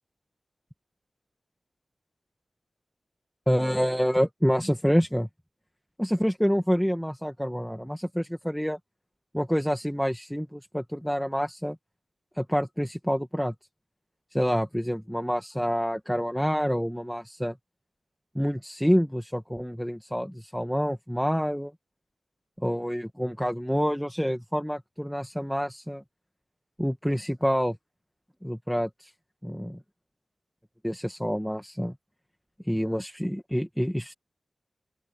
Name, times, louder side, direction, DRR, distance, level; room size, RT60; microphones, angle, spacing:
voice 1, 3.5-5.3 6.0-8.8 9.3-11.8 12.4-13.5 14.3-17.5 18.3-21.7 22.6-26.0 26.8-27.8 28.4-29.1 29.4-29.8 30.8-31.9 32.6-34.1, equal, ahead, 1.3 m, -27 dB
open air
wide cardioid pair, 120°, 0 cm